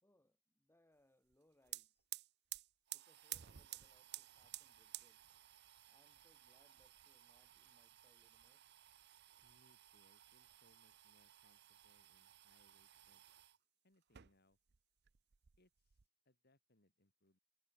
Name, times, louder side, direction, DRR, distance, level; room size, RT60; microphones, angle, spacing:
voice 1, 0.0-2.1 2.9-5.2 5.9-8.6, left 1 dB, 10° left, 3.2 m, -76 dB
sound 1, 1.3-1.4 1.6-13.6 14.0-14.8 15.1-16.1, right 15 dB, 55° right, 0.7 m, -55 dB
voice 2, 9.4-13.2 13.8-14.6 15.6-16.0 16.3-17.4, left 1 dB, 50° left, 5.9 m, -76 dB
head